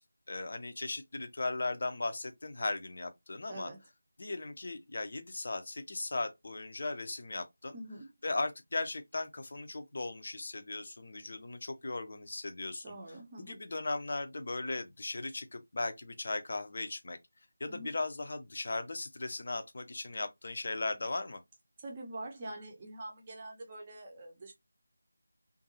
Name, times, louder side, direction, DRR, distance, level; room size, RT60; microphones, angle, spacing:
voice 1, 0.3-3.7 4.2-7.8 8.2-17.2 17.6-21.4, left 2 dB, 40° left, 0.5 m, -37 dB
voice 2, 3.5-3.8 7.7-8.1 12.8-13.6 17.6-17.9 21.8-24.5, right 1 dB, 20° right, 0.7 m, -45 dB
2.6 x 2.5 x 2.6 m
figure-of-eight pair, 165°, 0 cm